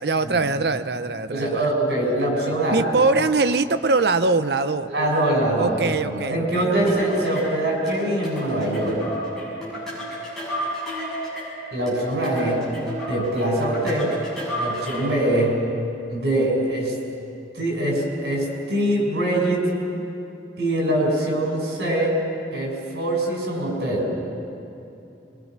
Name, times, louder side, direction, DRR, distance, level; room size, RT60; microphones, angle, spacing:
voice 1, 0.0-1.7 2.7-4.9 5.6-7.0, right 3 dB, 70° right, 11 dB, 0.8 m, -22 dB
voice 2, 1.3-2.8 4.9-9.0 11.7-12.7 13.1-14.1 14.6-15.6 16.1-16.9 17.5-19.6 20.6-22.2 22.5-24.1, right 1 dB, 90° right, -1 dB, 6.3 m, -23 dB
sound 1, 6.9-15.2, equal, 5° left, 7.8 m, -32 dB
26.0 x 22.5 x 6.1 m, 2.8 s
head